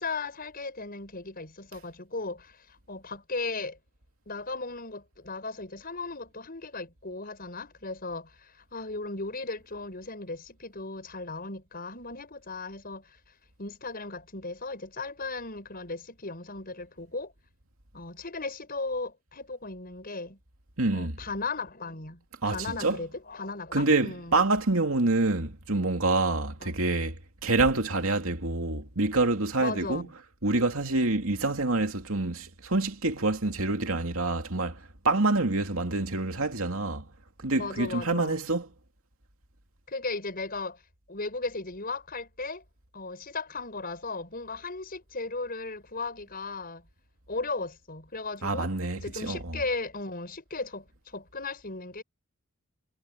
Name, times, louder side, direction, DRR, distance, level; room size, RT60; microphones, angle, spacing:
voice 1, 0.0-3.8 4.3-13.2 13.6-17.3 17.9-20.4 20.9-24.4 26.6-26.8 29.6-30.1 37.5-38.4 39.9-40.8 41.1-42.6 42.9-46.9 47.3-48.7 48.9-52.0, left 3 dB, 40° left, 6.4 m, -36 dB
voice 2, 20.8-21.2 22.4-23.0 23.7-30.1 30.4-37.1 37.4-38.7 48.4-49.6, right 2 dB, 70° right, 2.8 m, -27 dB
head